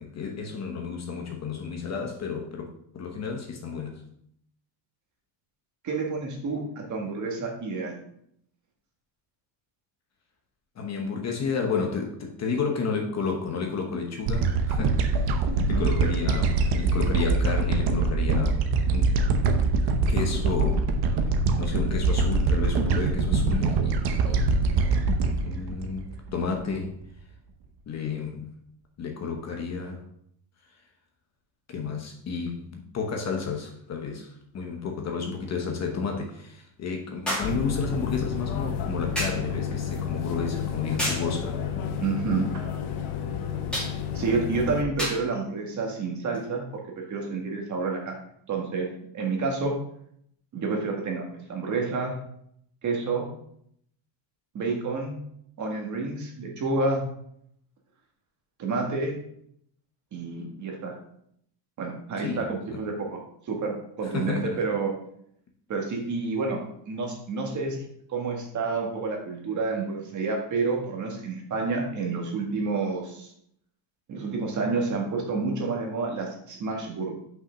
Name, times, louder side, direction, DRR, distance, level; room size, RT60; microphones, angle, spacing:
voice 1, 0.0-2.7 2.9-4.0 10.8-15.4 15.7-18.6 18.9-19.2 20.1-20.9 21.6-24.4 25.4-27.0 27.9-28.5 29.0-30.0 31.7-42.3 62.2-62.5 64.1-64.6, left 5 dB, 30° left, 1.0 m, -31 dB
voice 2, 5.8-8.0 15.5-15.9 42.0-42.4 44.1-48.1 48.5-48.9 49.1-49.7 50.5-51.2 51.5-52.2 52.8-53.3 54.5-55.1 55.6-57.1 58.6-59.1 60.1-60.9 61.8-63.2 63.5-64.9 65.7-66.6 66.8-67.8 68.1-73.3 74.1-77.1, right 4 dB, 35° right, 1.7 m, -29 dB
sound 1, 14.3-26.7, right 3 dB, 50° right, 0.9 m, -24 dB
sound 2, 33.5-33.6 37.3-37.6 39.2-39.5 41.0-41.3 43.7-44.0 45.0-45.3 46.3-46.5, equal, ahead, 2.2 m, -30 dB
sound 3, 37.4-44.8, left 7 dB, 75° left, 1.1 m, -31 dB
5.8 x 5.7 x 5.0 m
cardioid pair, 165°, 49 cm